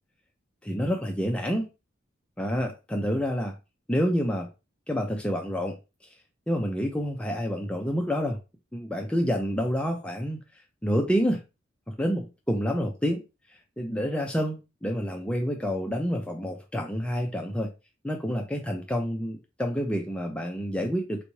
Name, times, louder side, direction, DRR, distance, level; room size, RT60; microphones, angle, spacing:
voice 1, 0.6-1.7 2.4-3.5 3.9-4.5 4.9-5.8 6.5-8.4 8.7-10.4 10.8-11.4 11.9-13.2 13.8-17.7 18.0-21.2, equal, 5° left, 2 dB, 0.4 m, -28 dB
4.0 x 2.2 x 3.1 m, 0.28 s
head